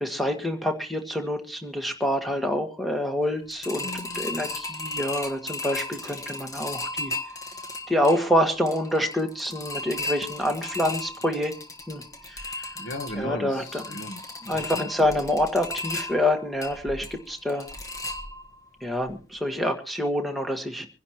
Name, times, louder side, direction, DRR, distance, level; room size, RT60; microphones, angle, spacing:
voice 1, 0.0-3.9 4.1-7.1 7.9-11.5 11.9-12.0 12.3-12.7 13.2-13.8 14.5-17.7 18.8-20.9, left 1 dB, ahead, 1.6 m, -27 dB
sound 1, 3.5-18.7 19.0-19.1 19.5-19.6, left 2 dB, 15° left, 1.4 m, -36 dB
voice 2, 3.8-4.3 12.7-14.9, left 1 dB, 90° left, 1.5 m, -37 dB
26.0 x 10.5 x 3.0 m
head